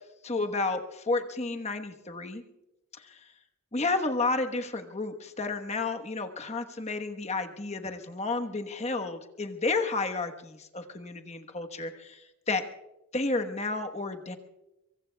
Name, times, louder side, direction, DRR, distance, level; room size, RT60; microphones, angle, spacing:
voice 1, 0.2-2.4 3.0-3.2 3.7-12.6 13.1-14.4, left 3 dB, 30° left, 6 dB, 1.2 m, -31 dB
24.5 x 24.0 x 2.3 m, 0.98 s
head